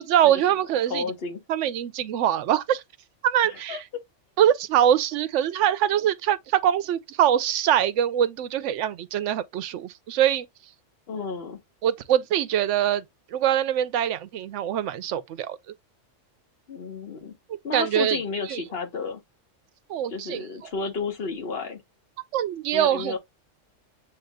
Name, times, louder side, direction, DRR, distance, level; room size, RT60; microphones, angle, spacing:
voice 1, 0.0-1.0 1.5-2.8 3.2-3.8 4.4-10.5 11.8-13.0 13.3-15.6 17.5-18.2 18.5-18.6 19.9-20.4 22.3-23.2, right 10 dB, 75° right, 0.9 m, -23 dB
voice 2, 0.9-1.4 3.5-3.8 11.1-11.6 16.7-17.3 17.6-19.2 20.1-21.8 22.7-23.2, left 4 dB, 55° left, 1.2 m, -32 dB
7.7 x 2.9 x 2.2 m
omnidirectional pair, 1.3 m